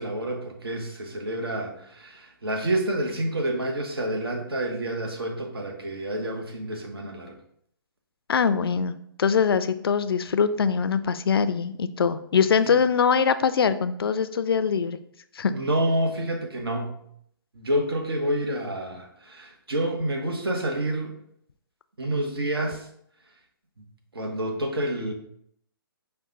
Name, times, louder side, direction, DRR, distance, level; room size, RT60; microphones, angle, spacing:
voice 1, 0.0-7.4 12.6-12.8 15.4-17.0 17.5-21.1 22.0-22.9 24.1-25.1, right 1 dB, 85° right, 3 dB, 1.1 m, -28 dB
voice 2, 8.3-15.0 15.4-15.5, left 6 dB, 80° left, 12 dB, 0.4 m, -23 dB
5.5 x 2.3 x 3.7 m, 0.69 s
hypercardioid pair, 145°, 12 cm